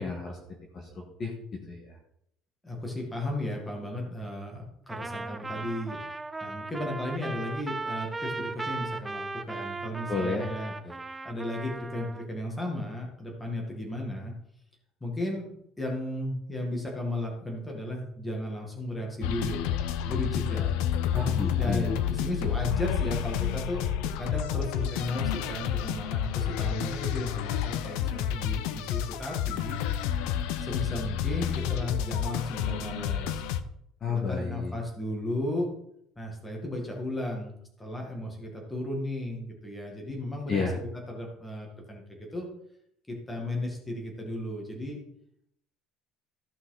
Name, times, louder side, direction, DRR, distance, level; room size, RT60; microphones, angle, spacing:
voice 1, 0.0-1.9 10.1-10.5 10.8-10.9 21.1-22.0 34.0-34.8 40.5-40.8, left 4 dB, 30° left, 0 dB, 1.7 m, -32 dB
voice 2, 2.6-6.0 6.4-14.3 15.0-15.5 15.8-19.6 20.0-20.7 21.6-23.9 24.2-29.8 30.6-33.4 34.1-35.7 36.2-42.0 42.3-42.5 43.1-45.0, left 1 dB, 5° left, -1 dB, 2.1 m, -35 dB
Trumpet, 4.9-12.3, right 3 dB, 10° right, 0.4 m, -37 dB
sound 1, 19.2-33.6, left 9 dB, 85° left, 0.7 m, -30 dB
14.5 x 5.9 x 4.0 m, 0.72 s
cardioid pair, 170°, 0 cm